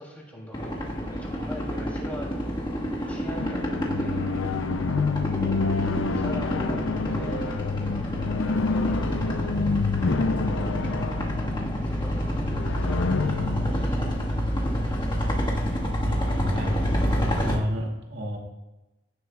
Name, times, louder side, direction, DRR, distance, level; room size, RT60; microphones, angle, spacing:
voice 1, 0.0-4.2 5.4-9.6 10.5-11.3 11.8-15.0, equal, 10° left, -3 dB, 2.7 m, -43 dB
sound 1, 0.5-17.6, equal, 25° left, 1.4 m, -28 dB
sound 2, 3.4-15.0, left 4 dB, 75° left, 0.5 m, -29 dB
voice 2, 16.0-16.7 17.4-18.4, equal, 60° right, 0 dB, 2.2 m, -31 dB
16.0 x 7.6 x 2.3 m, 1.0 s
head